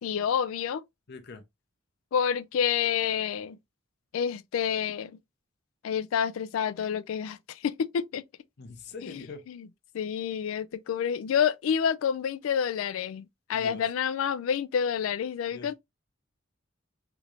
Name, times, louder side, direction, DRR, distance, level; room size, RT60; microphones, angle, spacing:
voice 1, 0.0-0.8 2.1-3.6 4.1-5.1 5.8-8.2 9.0-9.2 9.5-9.7 9.9-15.7, left 8 dB, 90° left, 0.3 m, -28 dB
voice 2, 1.1-1.4 8.6-9.4 13.5-13.9 15.5-15.7, left 4 dB, 55° left, 0.7 m, -43 dB
3.4 x 2.5 x 3.0 m
head